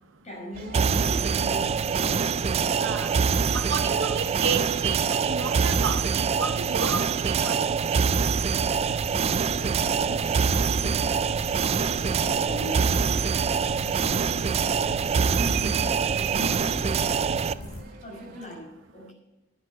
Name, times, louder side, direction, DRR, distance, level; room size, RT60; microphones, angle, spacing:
voice 1, 0.0-3.1 8.4-11.5 12.0-13.4 14.0-19.1, equal, 35° left, 0 dB, 5.4 m, -41 dB
sound 1, 0.5-18.5, right 6 dB, 45° right, 2.1 m, -42 dB
sound 2, 0.7-17.5, right 6 dB, 30° right, 0.3 m, -25 dB
voice 2, 2.8-3.1 3.5-8.0, right 6 dB, 65° right, 9 dB, 0.9 m, -31 dB
sound 3, 8.3-17.8, left 1 dB, 65° left, 4.4 m, -39 dB
11.5 x 10.0 x 5.4 m, 1.1 s
head